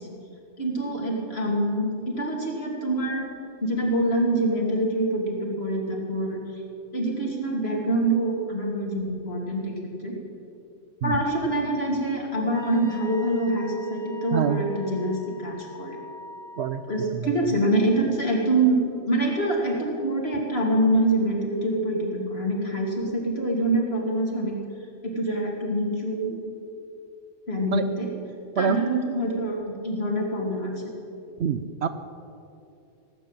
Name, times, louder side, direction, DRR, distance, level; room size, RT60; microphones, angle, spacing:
voice 1, 0.6-3.3 3.6-6.4 6.9-9.7 10.0-10.2 11.0-16.0 16.9-18.8 19.0-24.5 25.0-26.4 27.5-28.1 28.6-30.7, right 1 dB, 50° left, -1 dB, 2.8 m, -25 dB
Wind instrument woodwind instrument, 12.5-16.9, left 2 dB, 5° left, 1.1 m, -43 dB
voice 2, 14.3-14.6 16.6-16.8 17.1-17.3 27.7-27.8 28.6-28.8 31.4-31.9, right 7 dB, 60° right, 10 dB, 0.8 m, -25 dB
17.5 x 7.8 x 8.9 m, 2.6 s
omnidirectional pair, 1.3 m